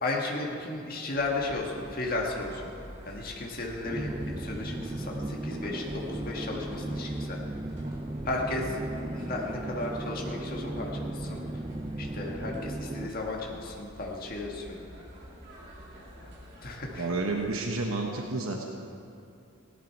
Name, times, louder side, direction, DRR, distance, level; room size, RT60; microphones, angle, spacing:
voice 1, 0.0-2.7 3.0-7.4 8.2-8.8 9.1-11.4 12.0-14.9 16.6-17.1, left 2 dB, 45° left, -1 dB, 1.7 m, -34 dB
sound 1, 1.2-17.7, equal, 55° right, 2.9 m, -48 dB
sound 2, 3.8-13.1, right 1 dB, 20° right, 0.4 m, -36 dB
voice 2, 17.0-18.6, right 3 dB, 70° right, 1 dB, 1.0 m, -30 dB
16.0 x 11.5 x 4.6 m, 2.6 s
head